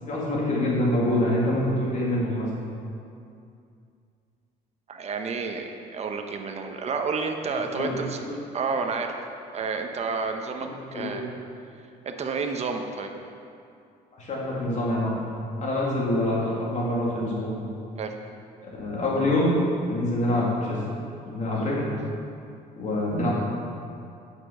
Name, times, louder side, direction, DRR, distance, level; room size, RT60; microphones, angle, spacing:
voice 1, 0.0-2.5 7.5-7.9 10.6-11.3 14.1-15.2 15.6-17.5 18.8-19.5 19.9-20.8 21.2-21.9 22.8-23.4, left 1 dB, 45° left, -4 dB, 2.3 m, -26 dB
voice 2, 4.9-8.2 8.5-9.2 9.5-11.2 12.0-13.1 18.0-18.2, right 4 dB, 40° right, 4 dB, 1.0 m, -30 dB
8.9 x 6.9 x 5.7 m, 2.5 s
cardioid pair, 110°, 17 cm